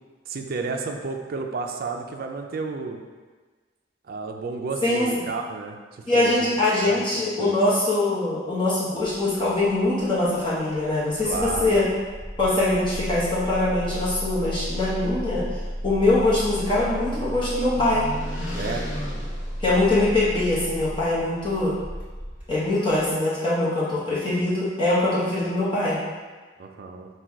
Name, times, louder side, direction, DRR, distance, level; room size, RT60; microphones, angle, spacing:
voice 1, 0.3-3.0 4.1-5.8 6.1-6.5 6.9-7.6 11.2-11.8 18.5-18.9 26.6-27.1, right 4 dB, 50° right, 3 dB, 0.4 m, -31 dB
voice 2, 6.1-11.8 12.4-15.4 15.8-18.1 19.6-21.7 22.5-26.0, left 2 dB, 25° left, -9 dB, 0.9 m, -23 dB
Engine starting, 9.0-23.1, equal, 10° right, 1.4 m, -34 dB
sound 1, 15.8-20.6, left 1 dB, 85° left, 0.8 m, -38 dB
4.0 x 2.3 x 4.6 m, 1.4 s
head